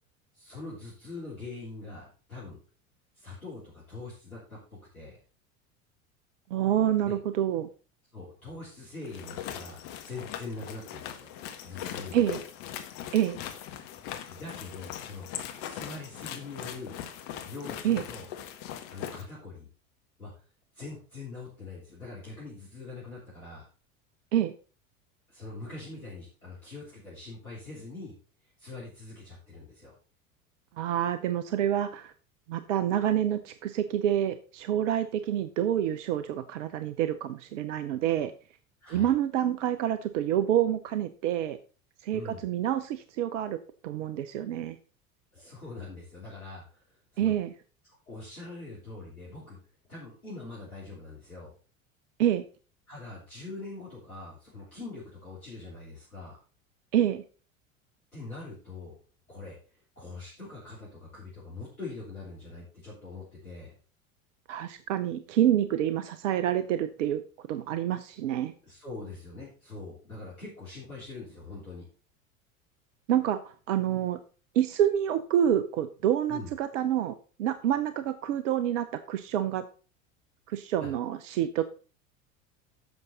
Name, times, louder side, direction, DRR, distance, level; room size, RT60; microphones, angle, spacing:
voice 1, 0.3-2.6 3.1-4.6 4.9-5.2 7.0-7.1 8.1-11.3 11.6-12.2 14.3-15.3 15.6-17.0 17.4-18.3 18.9-19.7 20.2-20.3 20.7-23.7 25.3-28.1 28.4-29.9 38.8-39.1 42.1-42.4 45.3-47.3 48.1-49.6 49.9-51.5 52.9-56.4 58.1-59.0 59.3-63.7 68.6-71.8 76.3-76.5 80.8-80.9, left 3 dB, 90° left, -6 dB, 3.4 m, -43 dB
voice 2, 6.5-7.7 12.1-12.4 13.1-13.4 17.8-18.0 24.3-24.5 30.8-32.1 32.5-38.3 38.9-41.6 42.0-43.6 43.8-44.8 47.2-47.5 52.2-52.4 56.9-57.2 64.5-67.2 67.5-68.5 73.1-74.2 74.5-79.6 80.5-81.6, right 10 dB, 60° right, 13 dB, 0.8 m, -27 dB
sound 1, 9.0-19.2, left 10 dB, 50° left, 1.6 m, -40 dB
10.5 x 7.1 x 3.9 m, 0.37 s
figure-of-eight pair, 75°, 42 cm